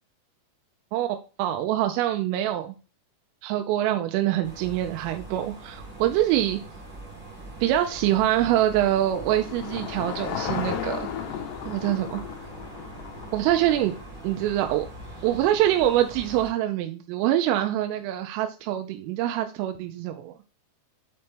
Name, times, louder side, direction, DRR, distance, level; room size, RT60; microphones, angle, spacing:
voice 1, 1.4-2.7 3.4-6.6 7.6-11.1 11.7-12.2 13.3-13.9 14.2-14.9 15.2-20.4, right 12 dB, 90° right, 6 dB, 3.2 m, -24 dB
sound 1, 4.4-16.5, right 2 dB, 35° right, 2.0 m, -43 dB
Car passing by / Engine, 7.9-14.3, left 8 dB, 70° left, 3.0 m, -35 dB
7.7 x 4.2 x 3.5 m, 0.35 s
omnidirectional pair, 5.7 m